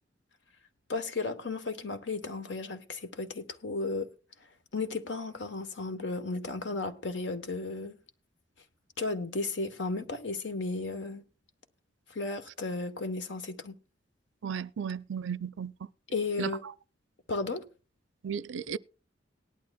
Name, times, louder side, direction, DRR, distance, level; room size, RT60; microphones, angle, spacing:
voice 1, 0.9-4.1 4.7-8.0 9.0-11.2 12.1-13.7 16.1-16.6 17.3-17.6, left 3 dB, 70° left, 1.1 m, -34 dB
voice 2, 14.4-15.7 16.4-16.5 18.2-18.8, right 7 dB, 90° right, 0.5 m, -34 dB
18.5 x 11.5 x 2.3 m
head